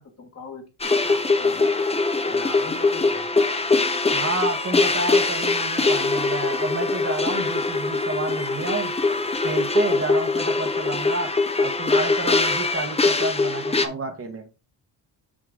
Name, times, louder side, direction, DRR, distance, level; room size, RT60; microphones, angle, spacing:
voice 1, 0.0-1.8 2.3-3.3, left 4 dB, 35° left, 1.7 m, -40 dB
sound 1, 0.8-13.8, left 3 dB, 15° left, 0.7 m, -22 dB
voice 2, 4.1-8.9 9.4-14.5, right 3 dB, 30° right, 1.1 m, -30 dB
6.2 x 5.7 x 3.7 m
cardioid pair, 125°, 45 cm